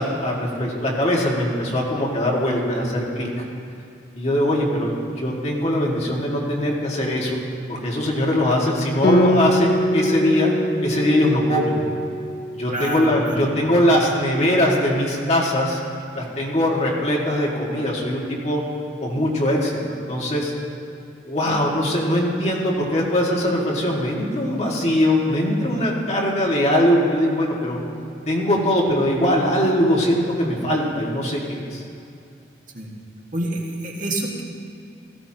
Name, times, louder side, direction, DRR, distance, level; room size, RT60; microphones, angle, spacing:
voice 1, 0.0-3.4 4.1-7.4 7.7-10.5 10.8-11.8 12.5-15.8 16.1-18.6 19.0-20.5 21.2-27.8 28.3-31.8, left 1 dB, 35° left, -3 dB, 2.0 m, -21 dB
Guitar, 9.0-14.0, equal, 65° left, 0.9 m, -24 dB
voice 2, 12.7-13.5 32.7-32.9 33.3-34.4, right 1 dB, 45° right, -2 dB, 1.8 m, -27 dB
16.5 x 15.0 x 2.9 m, 2.6 s
head